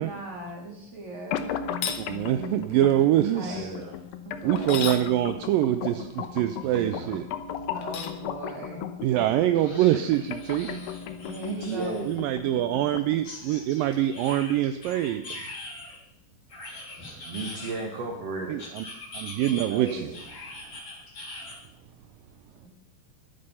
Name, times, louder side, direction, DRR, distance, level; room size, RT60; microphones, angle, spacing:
voice 1, 0.0-1.5 3.0-3.1 3.3-3.7 4.2-4.8 7.7-8.9 11.2-12.0 22.6-22.7, right 1 dB, 20° right, -1 dB, 4.0 m, -38 dB
sound 1, 1.3-13.3, left 9 dB, 80° left, 2.6 m, -36 dB
sound 2, 1.7-2.0 4.6-5.1 7.8-8.2, left 7 dB, 60° left, 1.7 m, -32 dB
voice 2, 2.0-3.7 4.4-7.3 9.0-10.8 12.0-15.4 18.5-18.8 19.1-20.1, right 13 dB, 80° right, 10 dB, 2.3 m, -25 dB
voice 3, 3.5-3.9 6.6-7.1 10.6-10.7 11.4-12.1 17.2-18.6 19.7-20.2, right 3 dB, 50° right, 0 dB, 2.5 m, -34 dB
sound 3, 8.1-8.2 8.5-8.6 9.5-12.1 13.2-16.0 16.5-18.0 18.6-21.6, left 2 dB, 30° left, 4.1 m, -42 dB
22.0 x 8.9 x 5.6 m, 0.74 s
omnidirectional pair, 4.2 m